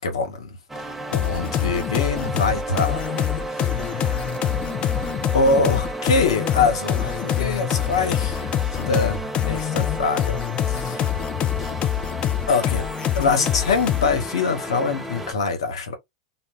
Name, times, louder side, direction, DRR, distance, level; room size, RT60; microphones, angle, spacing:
voice 1, 0.0-3.1 3.5-4.2 5.3-10.4 10.7-11.2 12.5-12.9 13.1-15.9, left 4 dB, 85° left, 1.2 m, -24 dB
sound 1, 0.7-15.3, right 2 dB, 5° right, 0.6 m, -33 dB
sound 2, 1.1-14.3, left 11 dB, 40° left, 0.4 m, -25 dB
2.5 x 2.2 x 3.5 m
hypercardioid pair, 110°, 3 cm